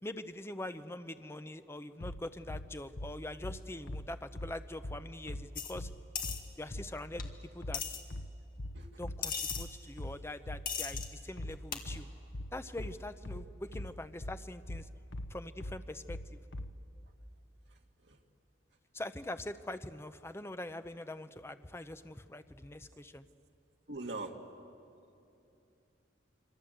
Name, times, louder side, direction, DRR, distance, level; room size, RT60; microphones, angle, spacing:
voice 1, 0.0-5.9 6.6-7.8 9.0-12.1 12.5-14.9 15.3-16.4 18.9-23.3, left 1 dB, 15° left, 10 dB, 0.7 m, -43 dB
sound 1, 2.0-16.8, left 1 dB, 75° left, 1.0 m, -42 dB
sound 2, 5.6-5.7 6.2-6.4 7.2-7.3 7.7-8.0 9.2-9.6 10.7-11.1 11.7-11.8, left 7 dB, 50° left, 2.1 m, -36 dB
voice 2, 23.9-24.3, right 2 dB, 65° right, 2 dB, 1.9 m, -42 dB
26.5 x 25.0 x 7.9 m, 2.6 s
head